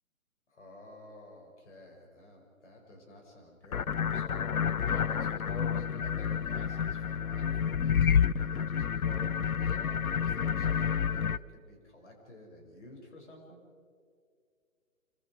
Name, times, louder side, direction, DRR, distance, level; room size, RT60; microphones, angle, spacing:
voice 1, 0.5-7.9 8.4-13.6, left 2 dB, 55° left, 0 dB, 7.5 m, -50 dB
sound 1, 3.7-11.4, left 7 dB, 85° left, 0.7 m, -29 dB
27.0 x 26.0 x 5.1 m, 2.1 s
figure-of-eight pair, 135°, 41 cm